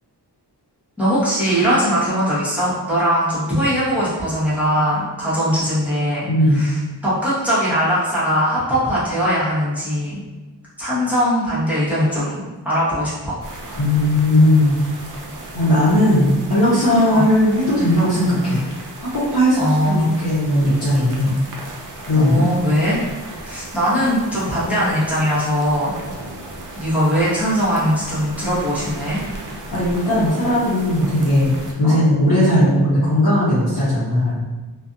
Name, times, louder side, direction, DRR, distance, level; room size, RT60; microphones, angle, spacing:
voice 1, 1.0-6.8 7.0-10.2 10.8-13.4 17.1-17.2 19.6-20.2 22.2-23.0 23.4-25.9 26.7-29.2 31.8-32.0, equal, 5° right, -10 dB, 1.0 m, -20 dB
voice 2, 6.2-6.6 13.8-14.8 15.5-18.6 19.0-21.4 22.1-22.4 29.7-31.5 31.8-34.4, left 1 dB, 55° left, -11 dB, 0.9 m, -17 dB
sound 1, 13.4-31.7, right 2 dB, 45° right, 0.5 m, -36 dB
2.5 x 2.3 x 2.5 m, 1.2 s
wide cardioid pair, 85°, 43 cm